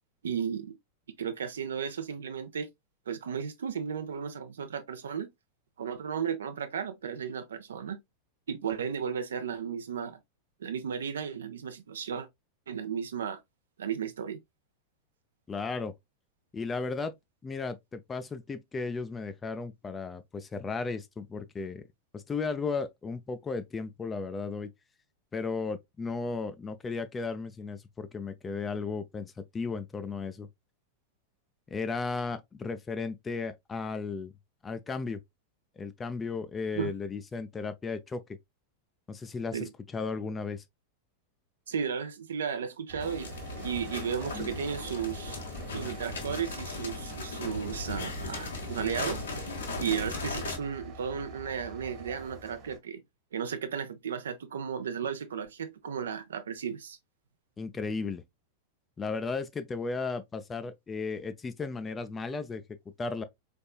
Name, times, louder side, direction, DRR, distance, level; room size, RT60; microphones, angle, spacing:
voice 1, 0.2-0.7 1.2-2.7 3.1-5.3 5.8-8.0 8.5-10.2 10.6-12.3 12.7-13.4 13.8-14.4 36.8-36.9 39.5-39.7 41.7-43.3 43.6-45.4 45.7-49.2 49.8-53.0 53.3-57.0, right 7 dB, 65° right, 0.6 m, -34 dB
voice 2, 15.5-15.9 16.5-17.1 17.4-21.8 22.1-24.7 25.3-30.5 31.7-34.3 34.6-35.2 35.8-38.2 39.1-40.6 57.6-58.2 59.0-62.6 63.0-63.2, left 4 dB, 15° left, 0.5 m, -35 dB
sound 1, 42.9-52.8, right 1 dB, 35° right, 1.2 m, -45 dB
sound 2, 43.0-50.6, left 3 dB, 70° left, 1.5 m, -38 dB
4.2 x 3.5 x 2.3 m
figure-of-eight pair, 90°, 0 cm